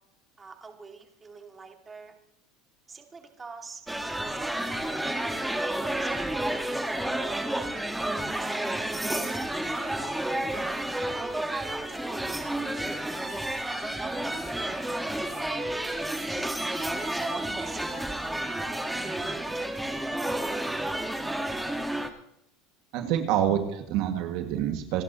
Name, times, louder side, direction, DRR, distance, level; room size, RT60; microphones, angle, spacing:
voice 1, 0.4-2.1 2.9-3.8 4.3-5.0 6.0-10.2 10.9-14.8 15.4-16.5 17.1-19.7, right 4 dB, 20° right, 3 dB, 2.2 m, -44 dB
sound 1, 3.9-22.1, right 1 dB, 5° right, 1.5 m, -31 dB
voice 2, 22.9-25.0, right 10 dB, 65° right, 5 dB, 2.0 m, -27 dB
28.0 x 10.5 x 3.0 m, 0.75 s
supercardioid pair, 110°, 0 cm